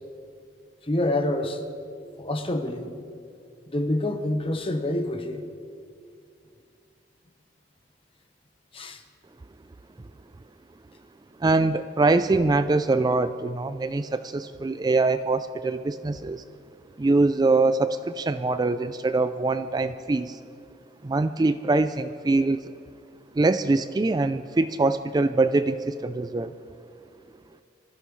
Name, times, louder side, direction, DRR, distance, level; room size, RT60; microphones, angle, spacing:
voice 1, 0.9-1.6 2.2-2.9 3.7-5.4 8.7-9.0, left 1 dB, 30° left, 1.1 m, -27 dB
voice 2, 11.4-16.4 17.0-20.4 21.0-22.6 23.3-26.5, right 3 dB, 20° right, 0.3 m, -23 dB
25.5 x 14.5 x 3.2 m
head